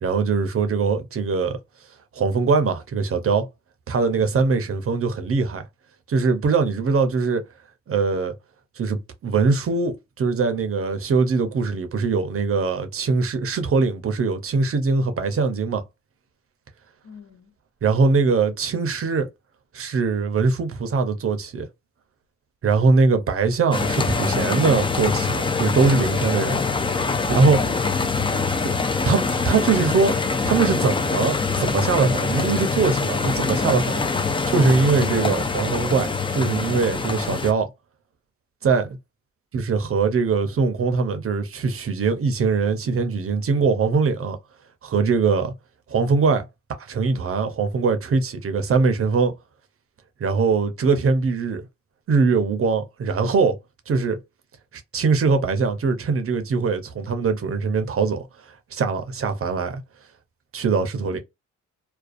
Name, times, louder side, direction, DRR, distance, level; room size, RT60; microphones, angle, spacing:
voice 1, 0.0-1.6 2.1-3.5 3.9-5.6 6.1-7.4 7.9-8.3 8.8-15.8 17.8-19.3 19.7-21.7 22.6-26.5 27.3-27.6 28.6-28.7 29.1-30.2 30.4-34.0 34.5-37.7 38.6-38.9 39.5-44.4 44.8-45.5 45.9-46.5 46.8-49.3 50.2-51.6 52.1-53.6 53.9-54.2 54.9-59.8 60.5-61.2, right 4 dB, 45° right, 0.6 m, -22 dB
voice 2, 17.0-17.6 26.2-26.7 38.6-39.0 61.1-61.2, left 4 dB, 65° left, 1.1 m, -45 dB
sound 1, 23.7-37.5, left 4 dB, 15° left, 0.3 m, -24 dB
2.5 x 2.2 x 2.4 m
cardioid pair, 105°, 30 cm